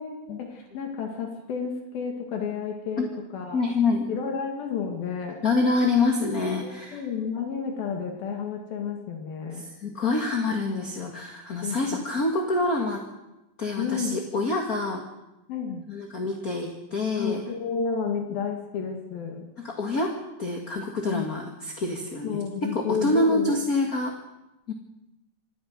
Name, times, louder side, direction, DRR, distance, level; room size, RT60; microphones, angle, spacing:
voice 1, 0.0-3.6 4.1-5.4 6.6-9.6 11.6-12.0 13.8-14.2 15.5-15.9 17.2-19.5 21.1-21.3 22.2-23.5, left 6 dB, 75° left, 3 dB, 3.9 m, -31 dB
voice 2, 3.5-4.1 5.4-7.1 9.6-13.0 13.6-15.0 15.9-17.4 19.6-20.1 20.4-22.4 22.7-24.1 24.7-24.8, left 2 dB, 35° left, 2 dB, 1.7 m, -26 dB
26.5 x 12.5 x 9.6 m, 0.97 s
omnidirectional pair, 4.3 m